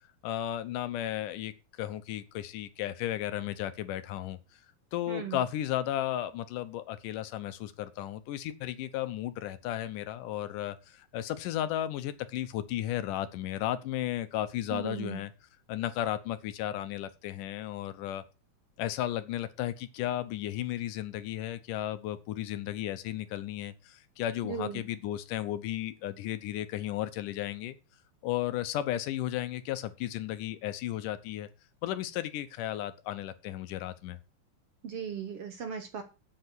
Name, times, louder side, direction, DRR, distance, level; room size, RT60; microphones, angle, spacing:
voice 1, 0.2-1.5 1.8-4.4 4.9-15.3 15.7-18.2 18.8-27.8 28.2-31.5 31.8-34.2, left 12 dB, 75° left, 2.3 m, -34 dB
voice 2, 5.1-5.4 14.7-15.2 24.4-24.8 34.8-36.0, right 7 dB, 55° right, 1.8 m, -37 dB
8.1 x 7.8 x 6.2 m
omnidirectional pair, 3.9 m